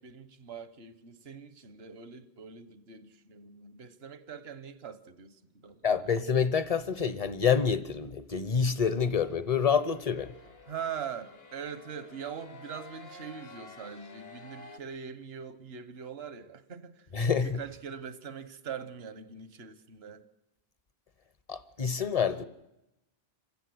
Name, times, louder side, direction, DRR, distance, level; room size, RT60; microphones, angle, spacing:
voice 1, 0.0-5.8 10.7-17.1 17.4-20.2, right 7 dB, 70° right, 1.3 m, -42 dB
voice 2, 5.8-10.3 17.1-17.6 21.5-22.4, left 6 dB, 40° left, 0.8 m, -27 dB
sound 1, 8.6-14.8, left 3 dB, 70° left, 1.6 m, -52 dB
27.0 x 14.5 x 7.8 m
omnidirectional pair, 1.1 m